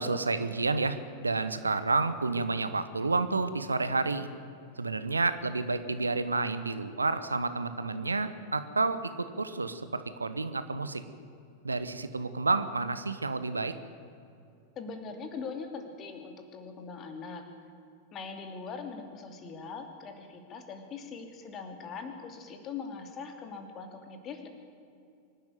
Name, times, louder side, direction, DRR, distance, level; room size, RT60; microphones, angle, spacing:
voice 1, 0.0-4.3 4.8-11.0 11.6-13.8, right 3 dB, 80° right, 12 dB, 1.0 m, -30 dB
voice 2, 14.8-17.5 18.1-24.5, left 5 dB, 30° left, 6 dB, 2.8 m, -41 dB
24.5 x 12.0 x 9.4 m, 2.6 s
figure-of-eight pair, 90°, 0 cm